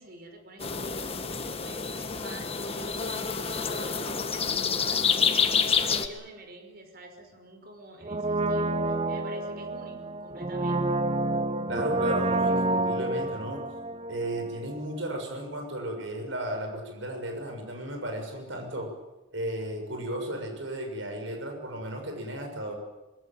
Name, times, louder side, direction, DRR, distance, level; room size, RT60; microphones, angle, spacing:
voice 1, 0.0-11.0, right 1 dB, 50° right, 5 dB, 5.3 m, -47 dB
sound 1, 0.6-6.1, left 6 dB, 30° left, 1.6 m, -28 dB
Brass instrument, 8.0-14.9 15.1-15.2, right 2 dB, 30° right, 0.9 m, -29 dB
voice 2, 11.7-13.6 14.1-18.9 19.3-22.7, right 1 dB, 75° right, 4 dB, 6.6 m, -34 dB
22.5 x 22.0 x 9.1 m, 1.0 s
head